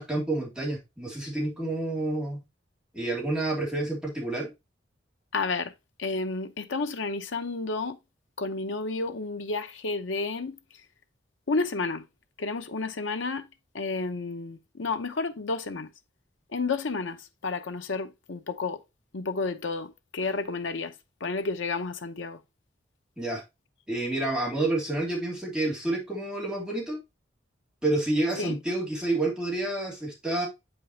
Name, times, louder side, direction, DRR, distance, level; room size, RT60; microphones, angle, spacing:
voice 1, 0.0-2.4 2.9-4.5 23.2-23.4 23.9-27.0 27.8-30.5, right 2 dB, 5° right, 2.8 m, -29 dB
voice 2, 5.3-5.7 6.0-8.0 8.4-10.8 11.5-12.1 12.4-13.5 13.7-15.9 16.5-18.8 19.1-22.4 28.4-28.6, left 3 dB, 85° left, 0.8 m, -31 dB
8.0 x 5.4 x 2.8 m
head